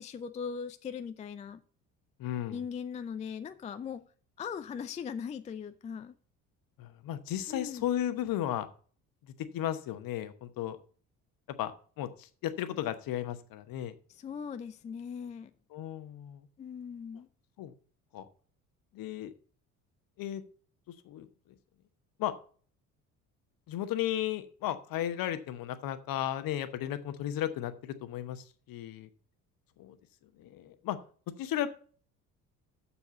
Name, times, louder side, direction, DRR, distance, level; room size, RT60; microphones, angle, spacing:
voice 1, 0.0-1.6 2.5-4.0 4.4-6.1 7.5-7.9 14.2-15.5 16.6-17.3, left 7 dB, 15° left, 0.4 m, -39 dB
voice 2, 2.2-2.6 6.8-8.7 9.4-10.8 11.6-11.7 12.0-13.9 15.7-16.5 17.6-17.7 18.1-18.3 18.9-19.3 20.2-20.4 20.9-21.3 22.2-22.3 23.7-29.1 29.8-30.0 30.4-31.0 31.4-31.7, left 11 dB, 50° left, 1.0 m, -34 dB
7.0 x 7.0 x 5.7 m
figure-of-eight pair, 50°, 45 cm